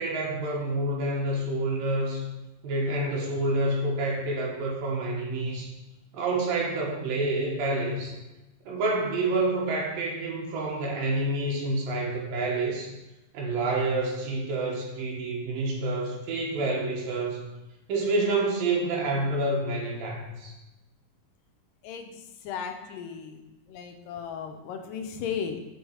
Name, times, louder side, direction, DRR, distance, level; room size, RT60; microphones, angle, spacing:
voice 1, 0.0-2.3 2.6-5.7 6.1-8.1 8.7-12.9 13.3-17.5 17.9-20.5, right 2 dB, 85° right, -3 dB, 3.1 m, -28 dB
voice 2, 21.8-22.2 22.4-23.4 23.7-25.6, left 7 dB, 80° left, 5 dB, 2.3 m, -35 dB
7.8 x 4.7 x 4.7 m, 1.0 s
omnidirectional pair, 3.9 m